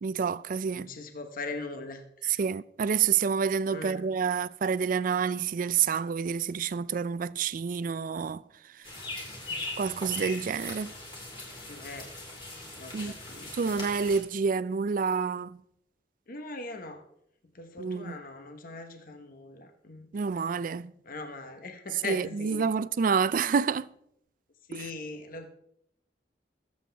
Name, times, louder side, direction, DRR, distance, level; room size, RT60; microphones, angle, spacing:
voice 1, 0.0-0.9 2.4-8.4 9.8-10.9 12.9-13.2 13.5-15.6 17.8-18.2 20.1-20.9 22.0-23.9 24.7-24.8, right 6 dB, 50° right, 0.4 m, -28 dB
voice 2, 0.7-2.4 3.7-4.0 9.5-9.7 11.7-12.1 12.8-13.8 16.3-17.0 17.5-20.1 21.0-22.7 24.7-25.5, left 3 dB, 55° left, 1.1 m, -41 dB
sound 1, 8.8-14.2, left 2 dB, 30° left, 3.3 m, -40 dB
21.0 x 7.9 x 3.4 m
head